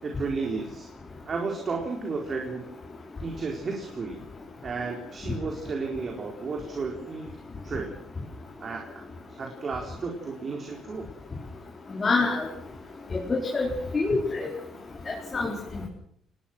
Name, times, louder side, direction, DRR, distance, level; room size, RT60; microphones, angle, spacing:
voice 1, 0.0-0.9 1.3-2.7 3.2-4.2 4.6-7.3 7.6-7.9 8.6-8.9 9.3-11.1, right 4 dB, 40° right, 1 dB, 4.4 m, -33 dB
voice 2, 11.9-12.4 13.1-13.7 13.9-14.5 15.3-15.9, left 3 dB, 30° left, -2 dB, 5.2 m, -26 dB
28.5 x 19.5 x 6.3 m, 0.71 s
cardioid pair, 120°, 0 cm